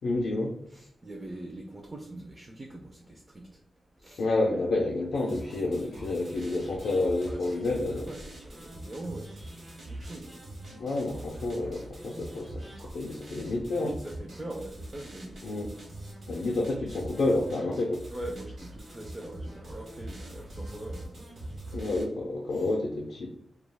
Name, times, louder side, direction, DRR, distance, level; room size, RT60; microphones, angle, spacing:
voice 1, 0.0-0.6 4.2-8.1 10.7-13.9 15.4-15.7 16.3-18.1 21.7-23.3, left 2 dB, 75° left, -1 dB, 0.4 m, -29 dB
voice 2, 0.7-3.6 4.0-4.2 7.3-10.4 12.8-13.0 13.8-15.5 18.1-21.9 22.5-22.7, right 1 dB, 20° right, 0 dB, 0.4 m, -43 dB
sound 1, 5.1-22.0, right 1 dB, 65° right, 1.1 m, -43 dB
2.3 x 2.2 x 3.3 m, 0.74 s
wide cardioid pair, 140°, 0 cm